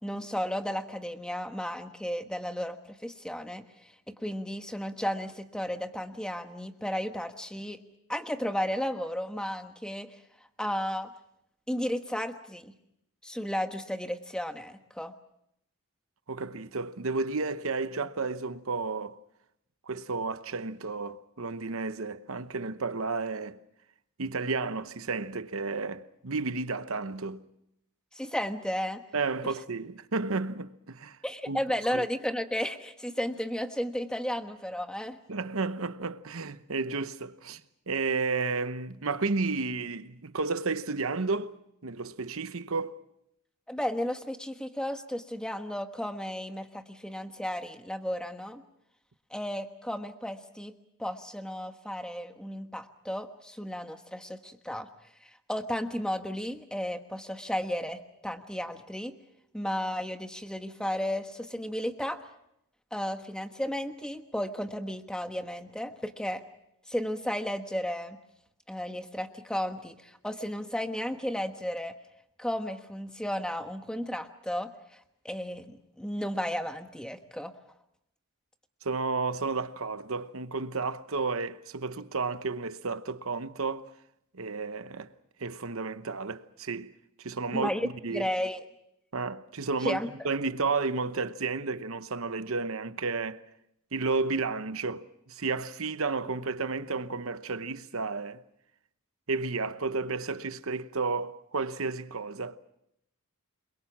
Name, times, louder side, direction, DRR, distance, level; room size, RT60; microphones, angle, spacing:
voice 1, 0.0-3.6 4.1-7.8 8.1-10.1 10.6-11.1 11.7-12.7 13.2-15.1 28.1-29.0 31.2-35.2 43.7-48.6 49.3-50.7 51.0-54.9 55.2-59.1 59.5-62.2 62.9-66.4 66.9-68.2 68.7-71.9 72.4-74.7 75.2-77.5 87.5-88.6 89.8-90.1, equal, 5° left, 1.3 m, -33 dB
voice 2, 16.3-19.1 19.9-23.6 24.2-27.4 29.1-31.2 31.5-31.6 31.9-32.1 35.3-37.6 37.9-41.5 41.8-42.9 78.8-83.9 84.3-85.1 85.4-86.9 87.2-88.3 89.1-93.4 93.9-98.4 99.3-102.6, right 4 dB, 65° right, 1.0 m, -32 dB
29.0 x 22.5 x 6.1 m
head